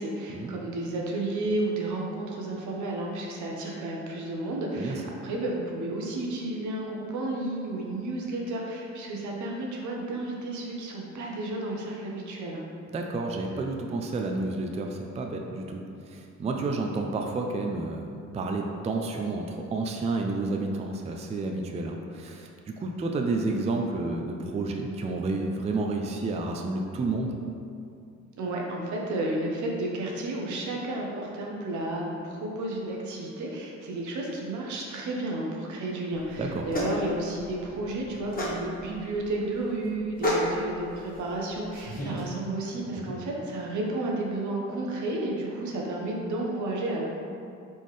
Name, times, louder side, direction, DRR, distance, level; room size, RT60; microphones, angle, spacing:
voice 1, 0.0-12.6 28.4-47.0, right 2 dB, 75° right, -1 dB, 0.9 m, -32 dB
voice 2, 12.9-27.4 36.4-36.7 43.1-43.2, right 3 dB, 20° right, 2 dB, 0.3 m, -30 dB
sound 1, 36.1-42.2, equal, 30° left, 1.1 m, -33 dB
4.2 x 3.7 x 3.2 m, 2.5 s
cardioid pair, 90°, 30 cm